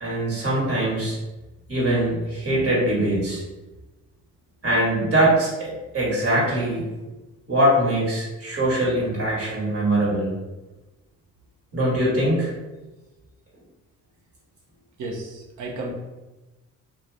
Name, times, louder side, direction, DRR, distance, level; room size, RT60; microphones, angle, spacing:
voice 1, 0.0-1.2 1.7-3.4 4.6-7.0 7.5-10.3 11.7-12.5, right 1 dB, 50° right, -5 dB, 1.5 m, -22 dB
voice 2, 15.0-15.9, right 2 dB, 85° right, -1 dB, 0.8 m, -33 dB
2.6 x 2.3 x 3.3 m, 1.1 s
cardioid pair, 90°, 30 cm